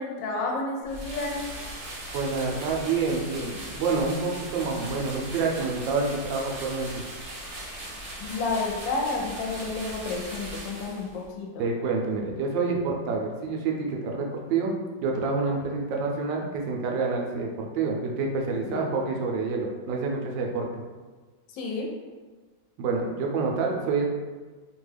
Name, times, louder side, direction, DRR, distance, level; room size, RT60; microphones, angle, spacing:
voice 1, 0.0-1.4 8.2-11.6 18.6-19.0 21.5-21.9, left 3 dB, 85° left, 0 dB, 1.3 m, -31 dB
sound 1, 0.8-11.3, right 1 dB, 70° right, 1.4 m, -39 dB
voice 2, 2.1-7.0 11.6-14.7 15.0-20.8 22.8-24.0, right 4 dB, 85° right, 0 dB, 1.3 m, -28 dB
3.2 x 2.2 x 3.2 m, 1.3 s
omnidirectional pair, 1.9 m